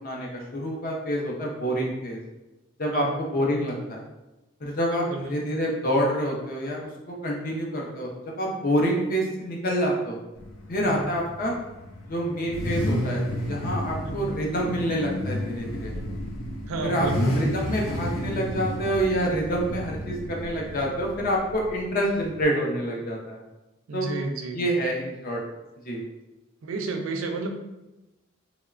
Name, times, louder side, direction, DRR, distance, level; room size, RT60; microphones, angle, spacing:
voice 1, 0.0-2.2 2.8-4.0 4.6-6.9 7.2-8.1 8.4-10.2 10.7-11.5 12.1-15.9 16.8-23.4 23.9-24.1 24.5-25.4 25.8-26.0, equal, 45° left, -1 dB, 0.5 m, -27 dB
voice 2, 2.9-3.2 4.9-5.4 10.9-11.0 14.0-14.3 16.7-17.4 23.9-24.6 26.6-27.5, right 3 dB, 75° right, 4 dB, 0.4 m, -32 dB
Car / Idling / Accelerating revving vroom, 10.4-22.4, left 1 dB, 90° left, 0.5 m, -31 dB
2.9 x 2.1 x 2.4 m, 1.0 s
head